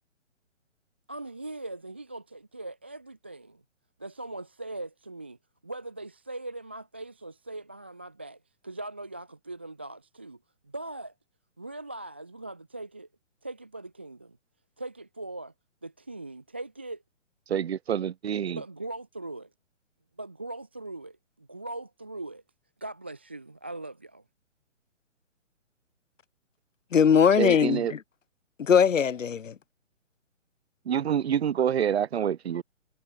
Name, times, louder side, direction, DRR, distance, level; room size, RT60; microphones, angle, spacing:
voice 1, 1.1-3.6 4.0-5.4 5.6-10.4 10.6-11.1 11.6-13.1 13.4-14.4 14.8-15.5 15.8-17.0 18.5-19.5 20.2-22.4 22.8-24.2, right 2 dB, 10° right, 0.4 m, -40 dB
voice 2, 17.5-18.6 27.4-27.9 30.9-32.6, right 9 dB, 55° right, 2.0 m, -27 dB
voice 3, 26.9-28.0 28.6-29.5, left 7 dB, 80° left, 1.2 m, -21 dB
hypercardioid pair, 145°, 38 cm